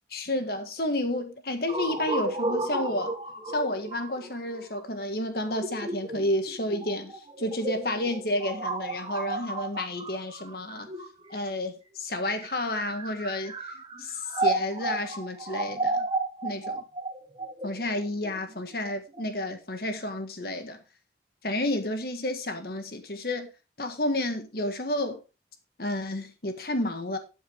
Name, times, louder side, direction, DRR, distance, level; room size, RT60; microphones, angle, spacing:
voice 1, 0.1-3.1 3.5-10.9 11.3-13.7 14.0-16.0 16.4-16.8 17.6-20.8 21.4-23.5 23.8-25.2 25.8-27.2, left 1 dB, 55° left, 1.7 m, -31 dB
sound 1, 1.7-11.5 12.3-19.2, right 2 dB, 25° right, 1.1 m, -33 dB
12.5 x 7.2 x 3.5 m
head